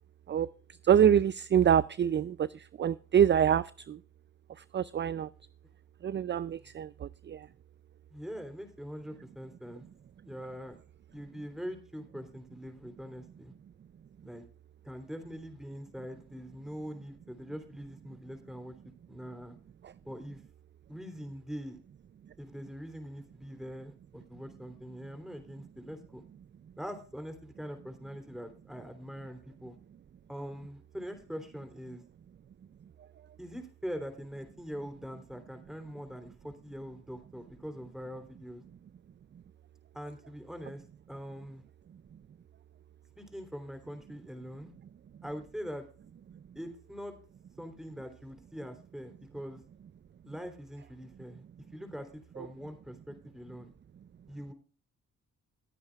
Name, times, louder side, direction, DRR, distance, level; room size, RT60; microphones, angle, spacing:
voice 1, 0.9-2.5 2.8-3.6 3.9-4.0 4.7-5.3 6.0-6.9 7.3-7.4, right 9 dB, 35° right, 19 dB, 0.4 m, -25 dB
voice 2, 8.1-9.8 10.2-10.8 11.1-13.5 14.2-14.4 14.8-18.7 19.1-19.5 20.0-20.4 20.9-21.8 22.4-26.2 26.8-29.7 30.3-32.0 33.4-38.6 39.9-41.6 43.2-44.7 45.2-45.9 46.5-47.2 47.6-49.6 50.2-51.4 51.7-53.7 54.3-54.5, equal, ahead, 7 dB, 3.3 m, -43 dB
19.5 x 9.4 x 2.4 m, 0.38 s
cardioid pair, 65°, 33 cm